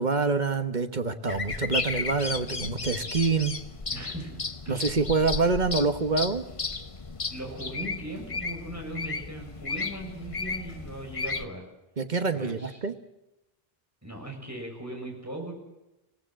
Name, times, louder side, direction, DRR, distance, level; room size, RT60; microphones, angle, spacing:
voice 1, 0.0-3.6 4.7-6.4 12.0-12.9, right 4 dB, 45° right, 9 dB, 1.3 m, -26 dB
sound 1, 1.3-11.5, left 4 dB, 35° left, 1.0 m, -34 dB
voice 2, 3.9-4.4 4.6-5.0 7.3-11.6 12.3-12.8 14.0-15.5, right 1 dB, 15° right, 1 dB, 6.5 m, -39 dB
25.5 x 18.0 x 7.6 m, 0.97 s
omnidirectional pair, 1.0 m